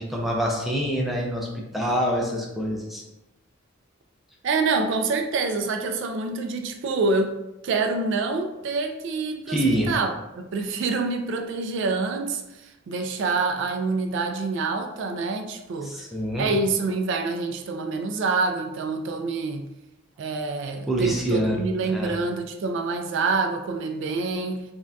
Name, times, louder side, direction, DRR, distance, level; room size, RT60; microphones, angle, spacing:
voice 1, 0.0-3.0 9.5-9.9 15.8-16.5 20.9-21.6 21.9-22.1, right 1 dB, ahead, -3 dB, 0.5 m, -25 dB
voice 2, 4.4-7.4 7.6-9.6 9.9-16.0 16.4-19.7 20.2-24.6, right 3 dB, 65° right, 5 dB, 0.3 m, -26 dB
2.6 x 2.2 x 3.3 m, 0.95 s
head